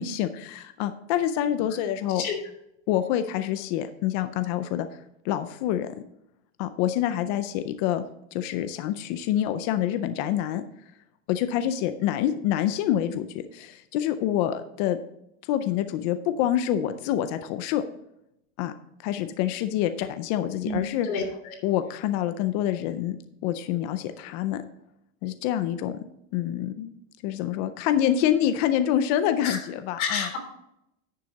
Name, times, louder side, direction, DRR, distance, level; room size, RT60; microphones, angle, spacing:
voice 1, 0.0-2.3 2.9-4.9 5.2-5.9 6.6-8.0 8.3-10.6 11.3-15.0 15.5-17.8 18.6-18.7 19.0-21.1 21.6-23.2 23.4-24.6 25.2-25.9 26.3-26.9 27.2-30.3, left 11 dB, 35° left, 10 dB, 0.4 m, -26 dB
voice 2, 30.0-30.4, left 6 dB, 85° left, 3 dB, 3.3 m, -28 dB
9.9 x 6.7 x 4.0 m, 0.81 s
supercardioid pair, 170°, 41 cm